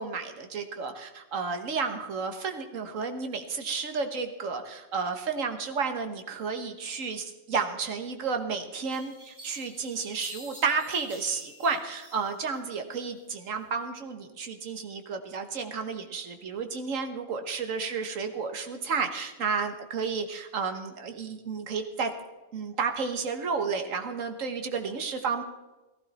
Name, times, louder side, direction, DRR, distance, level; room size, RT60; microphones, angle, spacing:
voice 1, 0.0-22.1 22.5-25.4, right 5 dB, 80° right, 6 dB, 1.7 m, -32 dB
sound 1, 8.2-8.3 8.9-12.6 12.9-13.7, equal, 20° right, 6.6 m, -49 dB
15.5 x 14.5 x 4.2 m, 1.1 s
omnidirectional pair, 1.3 m